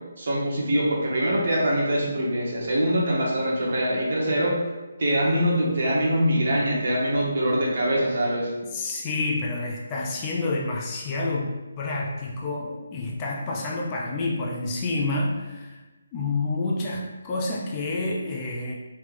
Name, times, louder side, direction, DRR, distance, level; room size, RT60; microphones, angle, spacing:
voice 1, 0.2-4.6 5.0-8.5, equal, 55° right, -4 dB, 1.0 m, -23 dB
voice 2, 8.7-15.8 16.1-18.7, left 2 dB, 20° left, -2 dB, 0.3 m, -28 dB
3.3 x 3.1 x 2.5 m, 1.2 s
hypercardioid pair, 170°, 0 cm